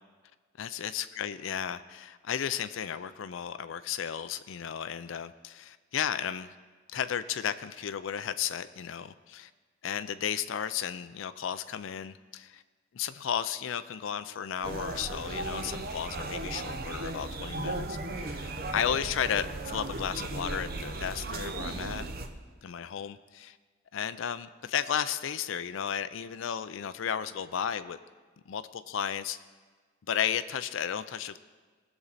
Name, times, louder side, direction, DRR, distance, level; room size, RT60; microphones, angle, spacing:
voice 1, 0.6-6.5 6.9-9.5 9.8-12.6 12.9-22.0 22.6-23.6 23.9-28.0 28.5-29.4 30.1-31.4, left 8 dB, 70° left, 13 dB, 0.4 m, -34 dB
sound 1, 14.6-22.3, right 2 dB, 50° right, 0.8 m, -36 dB
19.0 x 7.1 x 4.1 m, 1.4 s
head